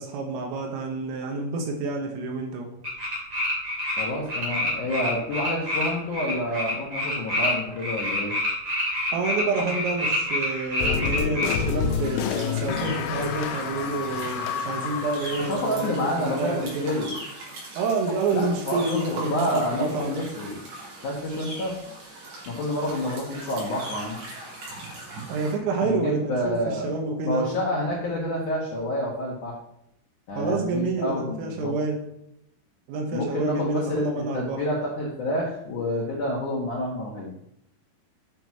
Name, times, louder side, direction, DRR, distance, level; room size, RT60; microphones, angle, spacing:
voice 1, 0.0-2.7 9.1-17.0 17.8-20.2 25.3-27.6 30.4-32.0 32.9-34.6, right 3 dB, 80° right, 2 dB, 4.0 m, -28 dB
sound 1, 2.8-4.0 4.3-11.6, left 1 dB, 35° right, 2.2 m, -27 dB
voice 2, 4.0-8.3 15.3-17.1 18.3-20.6 21.0-21.8 22.5-24.2 25.8-26.9 27.2-29.5 30.3-31.8 33.1-37.3, left 1 dB, 70° left, -3 dB, 1.9 m, -28 dB
sound 2, 10.8-16.5, left 8 dB, 90° left, 3.3 m, -29 dB
sound 3, 11.7-25.5, right 2 dB, 55° right, 5.4 m, -40 dB
9.9 x 6.2 x 6.0 m, 0.77 s
omnidirectional pair, 6.0 m